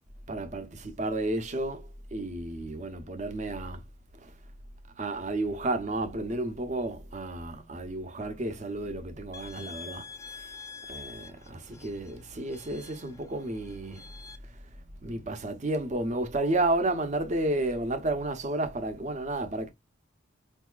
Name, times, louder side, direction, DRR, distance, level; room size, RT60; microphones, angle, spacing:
voice 1, 0.3-3.8 4.2-4.3 5.0-10.0 10.9-14.0 15.0-19.7, right 2 dB, 35° right, 0.7 m, -32 dB
sound 1, 9.3-14.4, left 5 dB, 15° left, 0.4 m, -47 dB
4.5 x 2.7 x 2.3 m
head